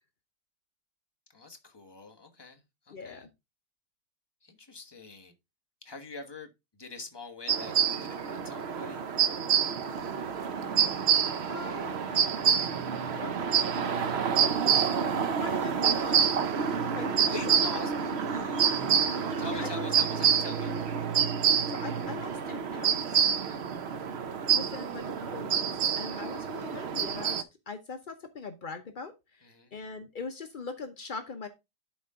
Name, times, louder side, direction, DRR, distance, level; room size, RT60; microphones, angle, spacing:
voice 1, 1.3-2.6 2.9-3.3 4.4-5.3 5.8-6.5 6.8-9.4 11.5-11.8 15.9-16.0 17.1-20.8 23.4-23.6 29.4-29.7, left 3 dB, 15° left, 0.9 m, -44 dB
voice 2, 2.9-3.3 11.5-12.0 13.1-13.3 14.4-14.8 15.3-16.2 16.8-17.6 18.6-18.7 19.5-19.9 21.7-23.2 24.5-31.5, left 4 dB, 70° left, 0.4 m, -42 dB
sound 1, 7.5-27.4, right 7 dB, 70° right, 0.6 m, -27 dB
11.5 x 4.3 x 3.6 m
omnidirectional pair, 2.1 m